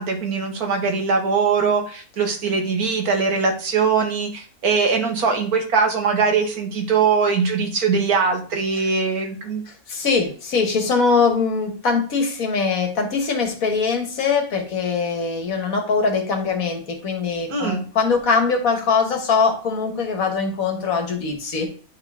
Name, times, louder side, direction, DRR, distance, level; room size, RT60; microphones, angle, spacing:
voice 1, 0.0-9.6 17.5-17.8, right 5 dB, 85° right, 3 dB, 1.8 m, -21 dB
voice 2, 9.9-21.6, left 5 dB, 70° left, 4 dB, 1.7 m, -22 dB
9.7 x 3.8 x 3.6 m, 0.40 s
omnidirectional pair, 1.6 m